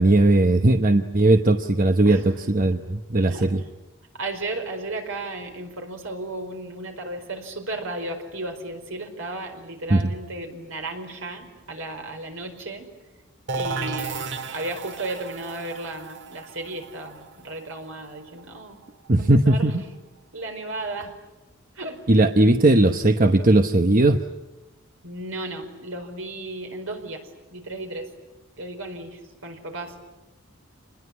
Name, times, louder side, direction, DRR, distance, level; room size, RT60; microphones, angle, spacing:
voice 1, 0.0-3.6 9.9-10.0 19.1-19.7 22.1-24.2, right 2 dB, 40° right, 7 dB, 1.0 m, -18 dB
voice 2, 2.1-2.5 3.3-3.5 4.1-12.9 13.5-18.8 19.2-20.0 20.3-21.1 21.7-22.0 25.0-27.2 27.5-28.1 28.6-29.9, right 2 dB, 75° right, 4 dB, 5.0 m, -34 dB
sound 1, 13.5-19.1, right 4 dB, 60° right, 1.8 m, -34 dB
27.5 x 21.0 x 9.7 m, 1.1 s
head